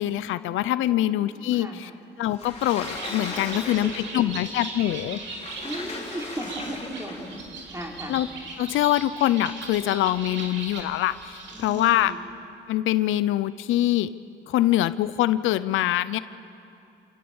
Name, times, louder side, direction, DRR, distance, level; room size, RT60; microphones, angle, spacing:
voice 1, 0.0-1.9 2.2-5.2 8.1-8.3 8.6-12.1 12.7-14.1 14.5-16.2, left 14 dB, 85° left, 15 dB, 0.6 m, -24 dB
voice 2, 1.3-1.9 3.5-4.3 5.6-7.4 7.7-8.1 11.5-12.2, right 1 dB, 15° right, 0 dB, 4.0 m, -37 dB
Sliding door, 2.3-4.3 5.2-7.4, left 3 dB, 35° left, 3.5 m, -38 dB
Bird, 2.4-12.1, right 3 dB, 65° right, 3.4 m, -39 dB
27.5 x 18.5 x 7.1 m, 2.6 s
cardioid pair, 90°, 20 cm